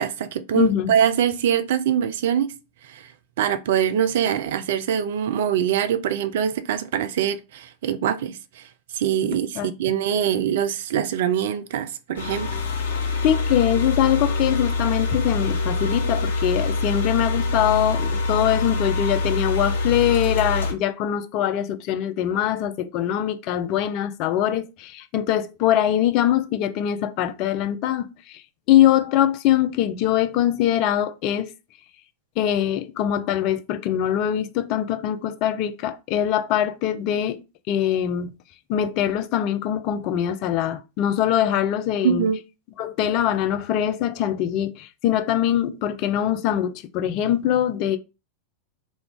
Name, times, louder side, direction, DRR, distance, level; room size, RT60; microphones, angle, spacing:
voice 1, 0.0-2.5 2.9-3.0 3.4-8.6 8.9-12.5 42.0-42.4, right 9 dB, 55° right, 0.3 m, -23 dB
voice 2, 0.6-0.9 9.6-9.7 13.2-28.4 28.7-31.5 32.4-37.4 37.7-38.3 38.7-42.3 42.8-48.0, left 11 dB, 40° left, 0.4 m, -23 dB
sound 1, 12.1-20.7, left 3 dB, 65° left, 1.0 m, -25 dB
2.4 x 2.2 x 3.5 m
figure-of-eight pair, 90°, 0 cm